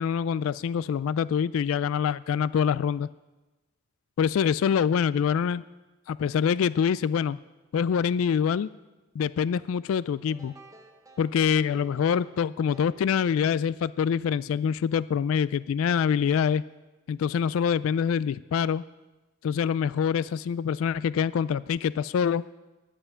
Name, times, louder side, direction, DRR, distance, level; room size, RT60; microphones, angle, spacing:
voice 1, 0.0-3.1 4.2-5.6 6.1-7.4 7.7-8.7 9.2-10.5 11.2-16.6 17.1-18.8 19.4-22.4, left 7 dB, 70° left, 18 dB, 0.3 m, -25 dB
sound 1, 10.3-14.1, right 1 dB, 15° right, 0.9 m, -53 dB
10.0 x 8.1 x 9.6 m, 1.1 s
head